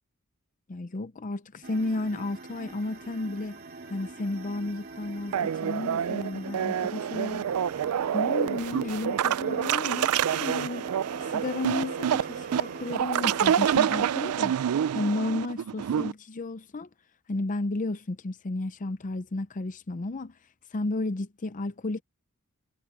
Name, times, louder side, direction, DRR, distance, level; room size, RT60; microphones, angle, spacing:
voice 1, 0.7-3.6 3.9-7.5 8.1-10.9 11.2-14.6 14.9-16.9 17.3-20.3 20.7-22.0, left 2 dB, 35° left, 0.6 m, -33 dB
sound 1, 1.6-13.8, right 2 dB, 45° right, 2.8 m, -43 dB
sound 2, 5.3-16.1, right 9 dB, 85° right, 0.4 m, -27 dB
head